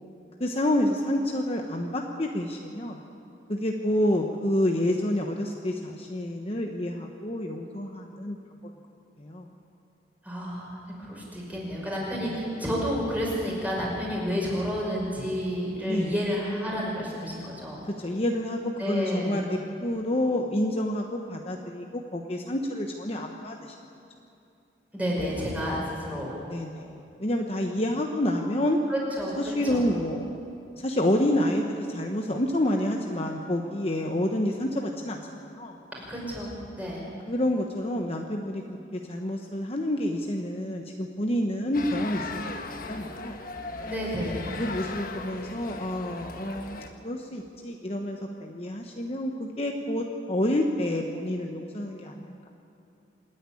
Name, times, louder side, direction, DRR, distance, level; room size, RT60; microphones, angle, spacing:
voice 1, 0.4-3.0 3.5-8.4 9.2-9.5 12.3-12.4 15.9-16.1 17.8-23.8 26.5-28.8 29.4-30.3 30.8-35.7 37.3-43.4 44.6-52.3, left 1 dB, 35° left, 2 dB, 1.0 m, -28 dB
voice 2, 10.2-10.8 11.1-17.8 18.8-19.4 24.9-26.3 28.9-29.3 29.6-29.8 36.0-37.1 43.8-44.5, equal, 10° right, -4 dB, 5.6 m, -30 dB
sound 1, 41.7-46.9, left 3 dB, 50° left, 1.3 m, -38 dB
26.5 x 10.0 x 9.8 m, 2.7 s
head